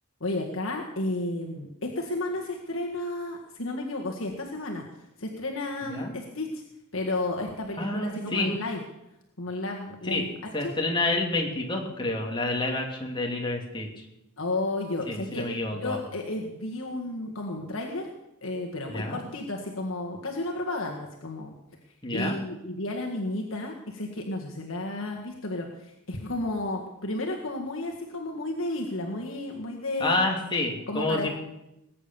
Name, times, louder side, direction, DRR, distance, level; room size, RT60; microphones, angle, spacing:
voice 1, 0.2-4.8 5.2-6.6 6.9-8.8 9.4-10.3 10.6-10.7 14.4-15.5 15.7-18.1 18.4-21.5 22.1-30.2 30.9-31.3, left 2 dB, 65° left, 0 dB, 1.9 m, -32 dB
voice 2, 7.8-8.5 10.1-10.3 10.5-13.9 15.1-16.0 18.9-19.2 22.0-22.4 30.0-31.3, left 2 dB, 20° left, 1 dB, 2.7 m, -28 dB
20.0 x 8.7 x 7.1 m, 0.88 s
head